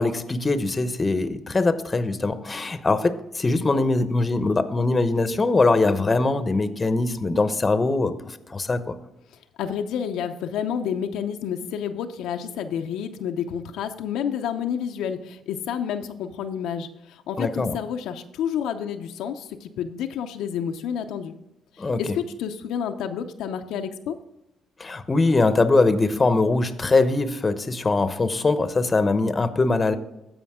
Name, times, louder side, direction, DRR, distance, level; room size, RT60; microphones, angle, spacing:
voice 1, 0.0-8.9 17.4-17.7 21.8-22.0 24.8-30.0, left 3 dB, 25° left, 11 dB, 0.9 m, -22 dB
voice 2, 9.6-21.3 22.0-24.2, left 8 dB, 90° left, 6 dB, 0.6 m, -29 dB
15.0 x 5.1 x 3.6 m, 0.90 s
cardioid pair, 90°, 0 cm